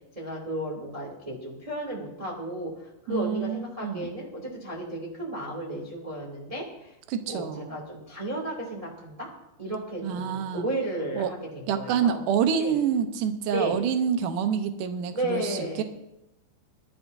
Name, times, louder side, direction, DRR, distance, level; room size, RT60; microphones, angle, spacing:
voice 1, 0.1-6.9 7.3-9.3 9.6-12.2 12.6-12.7 13.5-13.8 15.1-15.8, right 1 dB, 10° right, -3 dB, 1.6 m, -33 dB
voice 2, 3.1-4.1 7.1-7.8 10.0-10.7 11.2-11.3 11.7-15.8, right 7 dB, 75° right, 7 dB, 1.9 m, -27 dB
22.5 x 12.5 x 2.7 m, 0.88 s
omnidirectional pair, 5.0 m